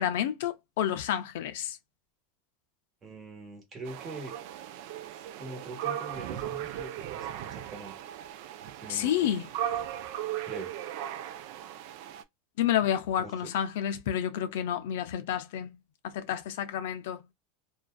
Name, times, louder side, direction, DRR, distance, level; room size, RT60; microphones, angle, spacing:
voice 1, 0.0-1.8 8.9-9.4 12.6-17.2, left 10 dB, 75° left, 0.4 m, -30 dB
voice 2, 3.0-4.3 5.4-7.9 8.7-9.3 10.4-10.7 13.2-13.5, right 3 dB, 20° right, 1.2 m, -43 dB
sound 1, 3.9-12.2, right 11 dB, 60° right, 0.4 m, -37 dB
2.5 x 2.2 x 2.2 m
supercardioid pair, 140°, 0 cm